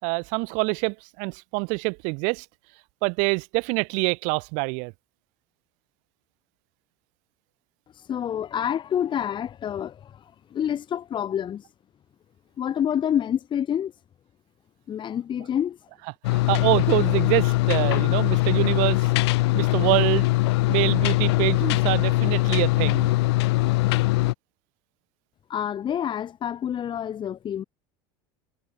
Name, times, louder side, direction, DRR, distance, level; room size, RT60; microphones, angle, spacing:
voice 1, 0.0-2.5 3.0-4.9 16.3-19.1 19.5-20.3 20.7-23.1, right 33 dB, 65° right, 2.8 m, -25 dB
voice 2, 7.9-11.6 12.6-13.9 14.9-15.8 25.5-27.6, left 9 dB, 35° left, 5.1 m, -28 dB
sound 1, 16.2-24.3, left 20 dB, 80° left, 0.6 m, -22 dB
supercardioid pair, 110°, 13 cm